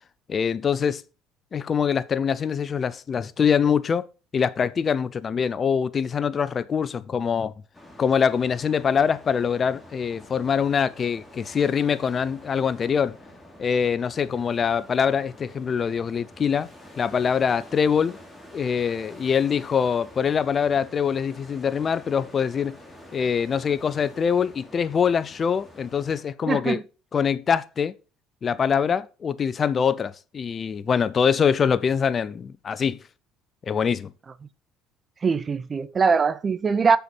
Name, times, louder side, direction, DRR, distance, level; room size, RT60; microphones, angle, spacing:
voice 1, 0.3-1.0 1.5-4.0 4.3-7.5 8.0-13.1 13.6-16.7 17.0-18.2 18.5-22.8 23.1-26.8 27.1-27.9 28.4-33.0 33.7-34.1, left 7 dB, 40° left, 0.6 m, -24 dB
sound 1, 7.7-26.2, left 1 dB, 10° left, 3.2 m, -47 dB
voice 2, 26.5-26.8 35.2-37.0, right 5 dB, 35° right, 0.6 m, -22 dB
6.9 x 6.9 x 4.4 m
hypercardioid pair, 70°, 0 cm